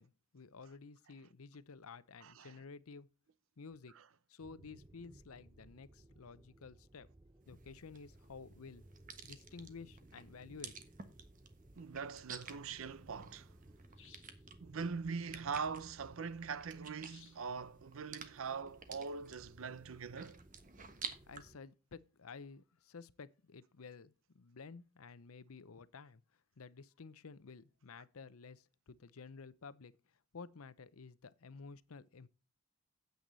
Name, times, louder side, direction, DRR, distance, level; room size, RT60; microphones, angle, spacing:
voice 1, 0.0-3.1 3.6-3.9 4.3-7.1 7.5-8.8 9.2-10.8 20.8-20.9 21.3-26.2 26.6-32.3, left 4 dB, 85° left, 0.7 m, -53 dB
voice 2, 2.2-2.5 11.8-13.5 14.6-20.4, right 5 dB, 70° right, 0.6 m, -42 dB
sound 1, 4.4-21.6, right 1 dB, 20° right, 0.5 m, -61 dB
sound 2, 7.5-21.4, right 6 dB, 40° right, 1.3 m, -53 dB
sound 3, 14.0-14.5 17.1-17.6, left 9 dB, 60° left, 2.5 m, -62 dB
9.3 x 8.3 x 4.0 m
head